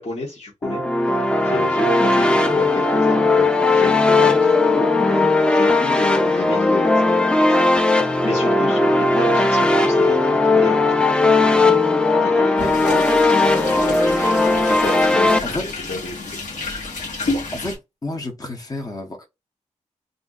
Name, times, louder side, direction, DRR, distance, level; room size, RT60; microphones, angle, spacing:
voice 1, 0.0-11.6 12.1-16.4, left 2 dB, 55° left, 1.2 m, -31 dB
sound 1, 0.6-15.4, left 2 dB, 10° left, 0.5 m, -17 dB
sound 2, 12.6-17.8, left 3 dB, 85° left, 1.3 m, -30 dB
voice 2, 18.0-19.3, left 2 dB, 30° left, 0.8 m, -29 dB
2.6 x 2.2 x 3.7 m
cardioid pair, 65°, 13 cm